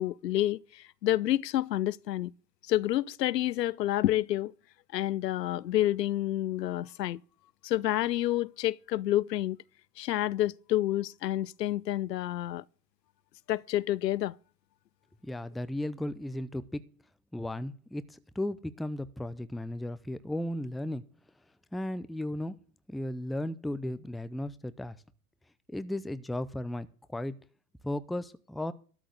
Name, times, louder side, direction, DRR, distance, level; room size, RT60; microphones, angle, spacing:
voice 1, 0.0-2.3 2.7-4.5 4.9-7.2 7.6-9.6 10.0-12.6 13.5-14.3, left 14 dB, 85° left, 0.7 m, -29 dB
voice 2, 15.2-16.8 17.3-21.0 21.7-22.6 22.9-25.0 25.7-27.4 27.8-28.7, left 1 dB, ahead, 0.5 m, -35 dB
13.0 x 6.1 x 8.1 m
hypercardioid pair, 100°, 49 cm